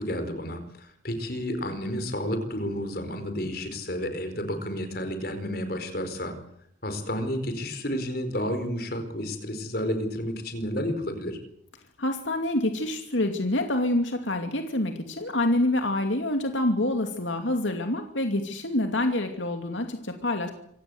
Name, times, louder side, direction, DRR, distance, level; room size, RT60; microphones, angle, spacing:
voice 1, 0.0-6.3 6.8-11.4, equal, 50° left, 8 dB, 4.8 m, -31 dB
voice 2, 12.0-20.5, left 1 dB, 85° left, 5 dB, 2.6 m, -27 dB
26.5 x 17.0 x 8.0 m, 0.70 s
head